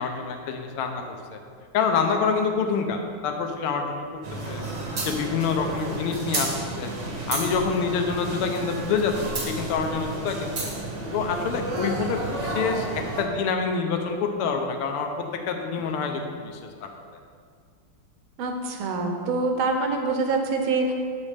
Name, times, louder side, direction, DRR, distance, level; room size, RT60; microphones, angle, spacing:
voice 1, 0.0-1.4 1.7-4.0 4.5-4.6 5.0-6.9 7.3-10.7 11.1-16.9, left 5 dB, 85° left, 4 dB, 1.5 m, -27 dB
sound 1, 4.2-13.2, right 2 dB, 55° right, 0.8 m, -31 dB
voice 2, 18.4-20.9, right 3 dB, 75° right, 3 dB, 1.4 m, -25 dB
7.2 x 5.1 x 3.3 m, 2.1 s
omnidirectional pair, 2.4 m